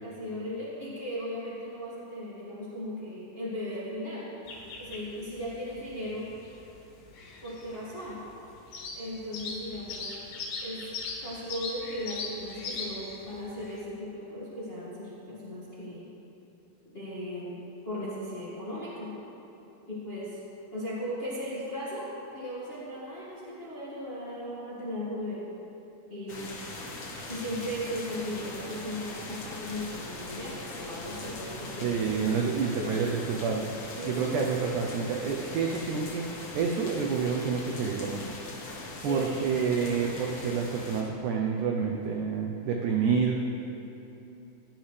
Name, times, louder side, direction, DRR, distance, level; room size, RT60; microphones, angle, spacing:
voice 1, 0.0-4.3 4.8-6.3 7.4-8.2 8.9-10.1 10.6-10.9 11.2-16.1 16.8-17.6 17.8-19.1 19.9-20.4 20.7-22.1 22.3-25.4 26.1-26.5 27.3-33.1 33.9-34.4 39.0-39.5, equal, 25° left, -9 dB, 1.2 m, -37 dB
sound 1, 4.5-13.8, left 3 dB, 90° left, 3.6 m, -40 dB
sound 2, 26.3-41.0, left 2 dB, 70° left, 1.1 m, -41 dB
voice 2, 31.8-33.7 34.1-36.3 36.6-38.2 39.0-43.4, right 6 dB, 85° right, 1 dB, 1.7 m, -28 dB
16.5 x 10.5 x 3.3 m, 2.9 s
omnidirectional pair, 4.4 m